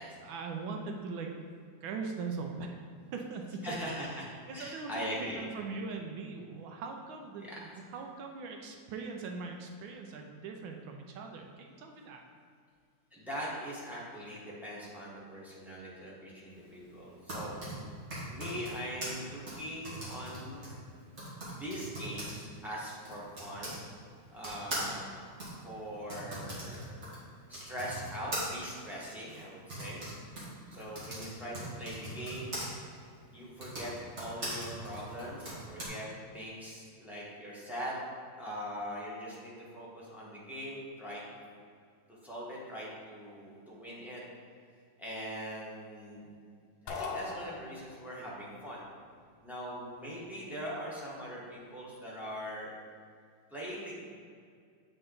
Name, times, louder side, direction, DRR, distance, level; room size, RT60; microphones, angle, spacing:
voice 1, 0.2-1.3 1.8-2.8 3.1-3.8 4.1-12.2, right 4 dB, 80° right, 3 dB, 1.4 m, -41 dB
voice 2, 3.6-5.5 7.4-7.6 13.1-17.5 18.3-20.7 21.5-23.8 24.3-25.1 25.6-26.9 27.5-30.0 30.7-32.6 33.3-36.1 36.3-38.0 38.3-41.2 42.1-44.2 45.0-46.3 46.8-48.8 49.4-52.7 53.5-54.0, equal, ahead, -7 dB, 0.9 m, -41 dB
Typing, 17.0-23.8 24.4-32.7 33.5-35.9, right 1 dB, 35° right, 1.7 m, -41 dB
sound 1, 46.9-48.2, left 4 dB, 65° left, 1.0 m, -39 dB
8.0 x 3.8 x 3.8 m, 2.2 s
omnidirectional pair, 2.2 m